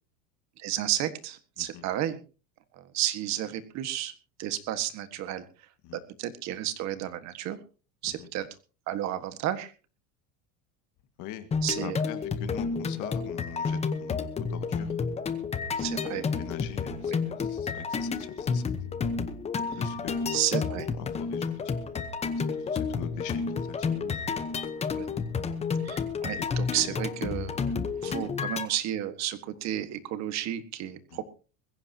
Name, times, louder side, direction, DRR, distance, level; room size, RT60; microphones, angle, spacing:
voice 1, 0.6-2.2 2.7-4.1 4.4-5.4 5.9-7.6 8.0-8.5 8.9-9.7 11.6-12.0 15.8-16.2 17.0-17.2 20.3-20.9 24.0-24.2 24.9-25.1 25.8-27.6 28.0-31.2, right 12 dB, 40° right, 11 dB, 1.7 m, -32 dB
sound 1, 11.5-28.7, left 5 dB, 15° left, 1.0 m, -31 dB
voice 2, 11.8-14.9 16.1-18.6 19.7-20.6 20.9-21.6 22.5-23.9 26.4-27.0 28.0-28.3 31.1-31.2, left 12 dB, 45° left, 10 dB, 1.9 m, -42 dB
21.5 x 15.5 x 2.9 m, 0.35 s
cardioid pair, 160°, 41 cm